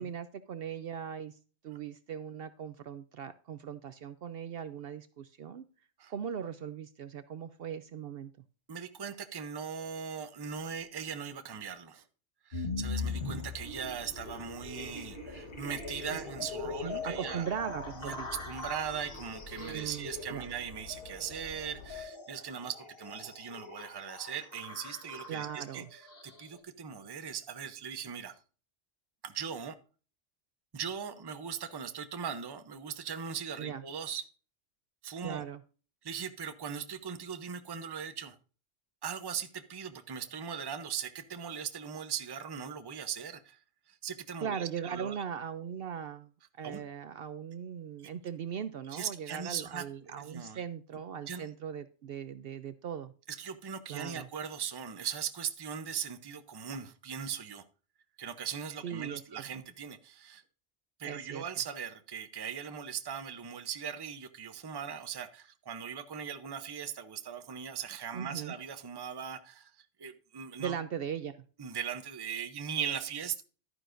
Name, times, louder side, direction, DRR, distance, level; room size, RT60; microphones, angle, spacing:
voice 1, 0.0-1.4 1.6-5.7 6.1-8.3 16.1-16.2 16.8-18.3 19.6-20.4 25.3-25.9 33.6-33.8 35.2-35.6 44.4-53.1 53.9-54.3 58.8-59.4 61.0-61.4 68.1-68.6 70.6-71.4, right 8 dB, 60° right, 13 dB, 0.7 m, -39 dB
voice 2, 8.7-12.0 12.4-17.5 17.9-28.3 29.2-29.7 30.7-34.3 35.0-35.4 36.0-38.4 39.0-43.6 43.9-45.2 46.6-46.8 48.9-50.6 51.3-51.4 53.3-57.6 58.2-60.4 61.0-70.8 71.6-73.4, right 7 dB, 25° right, 9 dB, 0.6 m, -39 dB
sound 1, 12.5-26.6, left 4 dB, 55° left, 1.5 m, -41 dB
sound 2, 13.1-22.0, left 3 dB, 75° left, 1.8 m, -51 dB
11.5 x 9.5 x 2.5 m, 0.37 s
omnidirectional pair, 1.2 m